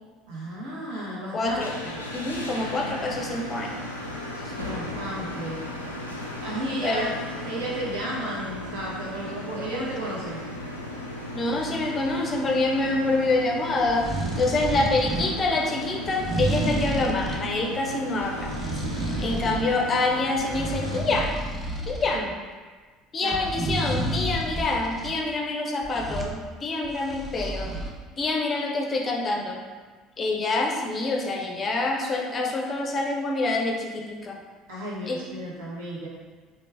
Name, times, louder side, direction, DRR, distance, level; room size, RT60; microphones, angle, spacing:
voice 1, 0.3-2.0 4.5-5.6 6.4-10.4 19.1-19.4 22.1-22.3 23.2-23.4 34.7-36.1, right 1 dB, 65° right, -5 dB, 0.8 m, -33 dB
voice 2, 1.3-1.7 2.1-3.9 4.4-4.5 6.8-7.1 11.3-18.5 19.2-21.3 21.9-22.3 23.1-27.7 28.2-29.6 30.2-34.4 35.1-35.2, left 2 dB, 30° left, 0 dB, 0.5 m, -26 dB
sound 1, 1.4-21.0, left 1 dB, 90° left, 0.3 m, -36 dB
sound 2, 13.8-15.4 16.1-17.5 18.2-19.7 20.1-22.2 23.3-25.1 25.8-26.4 26.8-27.9, right 1 dB, 15° right, 0.6 m, -30 dB
3.2 x 2.3 x 3.2 m, 1.5 s
figure-of-eight pair, 60°, 0 cm